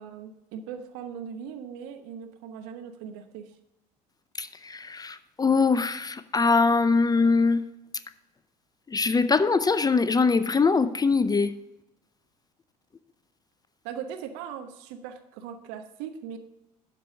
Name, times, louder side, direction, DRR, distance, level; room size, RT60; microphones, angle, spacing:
voice 1, 0.0-3.5 13.8-16.4, right 8 dB, 65° right, 7 dB, 1.1 m, -39 dB
voice 2, 4.4-7.6 8.9-11.5, left 4 dB, 20° left, 14 dB, 0.5 m, -22 dB
12.0 x 4.6 x 5.2 m, 0.91 s
hypercardioid pair, 65°, 20 cm